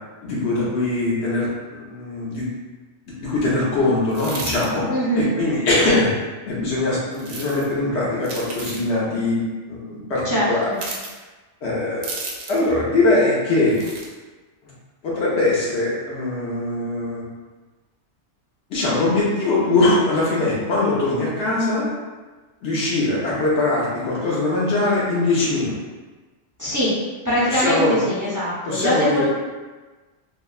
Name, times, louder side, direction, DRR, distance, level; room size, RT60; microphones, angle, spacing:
voice 1, 0.2-2.5 3.2-4.9 5.1-6.1 6.5-9.4 9.7-10.7 11.6-12.1 12.5-13.8 15.0-17.2 18.7-21.9 22.6-25.8 27.5-28.0 28.6-29.3, left 2 dB, 75° left, -6 dB, 1.0 m, -21 dB
sound 1, 4.1-4.7 7.1-7.7 8.2-8.9 10.7-11.1 12.0-12.7 13.7-14.1, right 3 dB, 85° right, 0.9 m, -33 dB
voice 2, 4.9-5.3 10.2-10.8 26.6-26.9 27.2-29.2, equal, 25° right, -10 dB, 0.4 m, -22 dB
3.3 x 2.1 x 2.3 m, 1.3 s
omnidirectional pair, 1.2 m